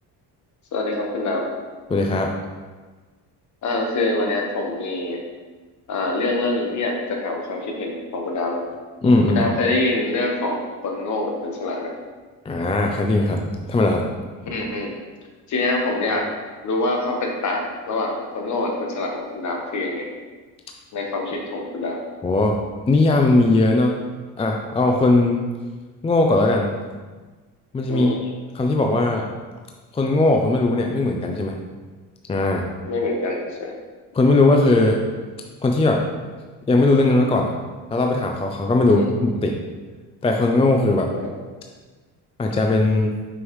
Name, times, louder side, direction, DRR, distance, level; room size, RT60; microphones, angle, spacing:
voice 1, 0.7-1.4 3.6-5.2 5.9-8.6 9.3-11.9 14.5-14.9 15.5-16.3 16.6-20.1 20.9-22.0 27.9-28.2 32.9-33.7 38.8-39.1 41.1-41.3, left 2 dB, 45° left, 1 dB, 1.3 m, -25 dB
voice 2, 1.9-2.3 9.0-9.4 12.5-14.0 22.2-22.6 22.9-23.9 24.4-25.5 26.0-26.8 27.7-29.3 29.9-31.5 32.3-32.7 34.1-35.0 35.6-36.0 36.7-37.5 37.9-39.6 40.2-41.1 42.4-43.1, left 2 dB, 15° left, 2 dB, 0.4 m, -19 dB
6.3 x 5.5 x 3.1 m, 1.4 s
cardioid pair, 125°, 39 cm